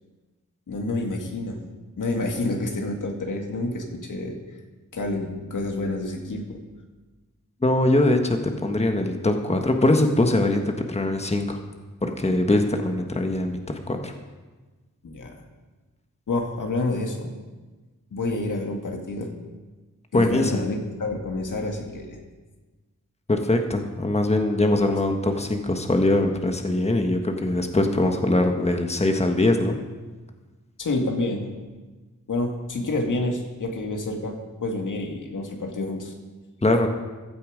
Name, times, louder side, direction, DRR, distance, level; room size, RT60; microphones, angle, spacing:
voice 1, 0.7-1.6 2.0-4.4 4.9-6.6 15.0-15.4 16.3-17.3 18.1-19.3 20.1-22.2 30.8-31.5 32.3-36.1, left 2 dB, 80° left, 1 dB, 2.1 m, -28 dB
voice 2, 7.6-11.6 12.0-14.1 20.1-20.7 23.3-29.8 36.6-36.9, left 1 dB, 20° left, 4 dB, 1.4 m, -22 dB
15.5 x 11.5 x 5.1 m, 1.3 s
wide cardioid pair, 80°, 31 cm